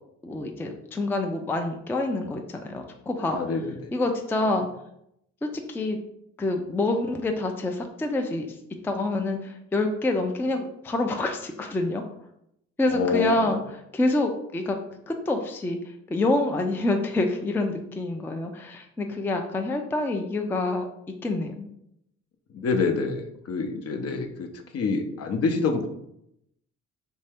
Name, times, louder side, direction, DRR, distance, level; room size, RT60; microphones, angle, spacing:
voice 1, 0.2-3.4 3.9-4.7 5.4-6.0 6.4-8.6 8.8-12.0 12.8-13.6 13.9-14.8 15.1-20.9 21.2-21.7, left 2 dB, 10° left, 4 dB, 0.3 m, -27 dB
voice 2, 3.3-3.9 4.4-4.5 12.9-13.6 22.5-25.9, left 4 dB, 55° left, 5 dB, 0.6 m, -27 dB
3.2 x 2.7 x 3.4 m, 0.78 s
cardioid pair, 90°, 30 cm